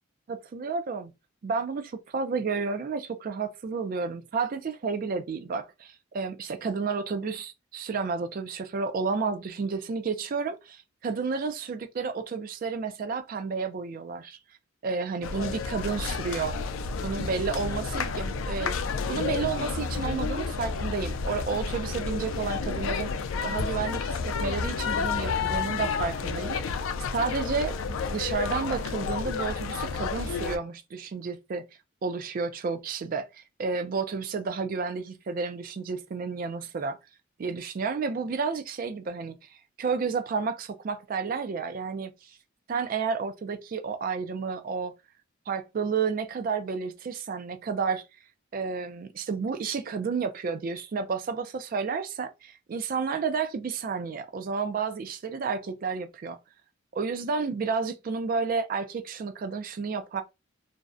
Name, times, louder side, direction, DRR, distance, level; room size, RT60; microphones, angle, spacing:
voice 1, 0.3-1.1 1.4-14.4 14.8-16.6 16.9-18.8 19.1-23.1 23.4-26.8 27.1-31.7 32.0-37.0 37.4-39.4 39.8-42.3 42.7-44.9 45.5-48.0 48.5-56.4 56.9-60.2, right 5 dB, 45° right, 0.3 m, -31 dB
sound 1, 15.2-30.6, left 5 dB, 75° left, 0.3 m, -30 dB
2.6 x 2.0 x 2.3 m
head